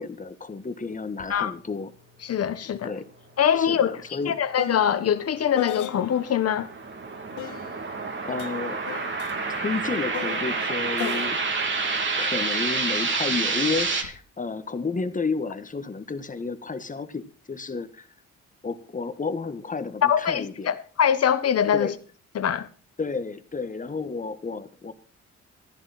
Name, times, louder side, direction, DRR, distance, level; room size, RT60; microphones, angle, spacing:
voice 1, 0.0-1.9 2.8-3.1 3.6-4.4 7.5-7.6 8.3-8.8 9.5-11.4 12.2-18.1 18.6-20.7 21.7-21.9 23.0-24.9, left 4 dB, 25° left, 1.6 m, -31 dB
sound 1, 1.2-1.3 1.7-6.4 7.4-12.9 13.7-14.2, left 13 dB, 90° left, 1.4 m, -37 dB
voice 2, 2.2-2.9 3.4-4.0 4.3-6.7 20.0-21.9 22.3-22.7, left 9 dB, 55° left, 1.5 m, -23 dB
sound 2, 5.6-14.0, right 4 dB, 40° right, 2.8 m, -28 dB
13.5 x 11.0 x 4.3 m
cardioid pair, 90°, 30 cm